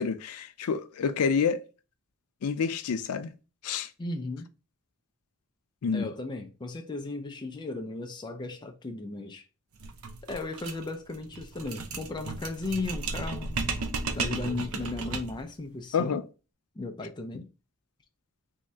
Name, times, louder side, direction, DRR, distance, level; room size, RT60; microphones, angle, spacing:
voice 1, 0.0-1.6 2.4-3.3 3.6-3.9 5.8-6.1 15.9-16.2, left 6 dB, 90° left, 0.4 m, -28 dB
voice 2, 4.0-4.5 5.9-9.4 10.2-13.6 14.1-16.2 16.8-17.5, left 2 dB, 20° left, 0.4 m, -36 dB
sound 1, 9.8-15.5, right 3 dB, 70° right, 0.6 m, -34 dB
3.1 x 2.7 x 3.4 m
head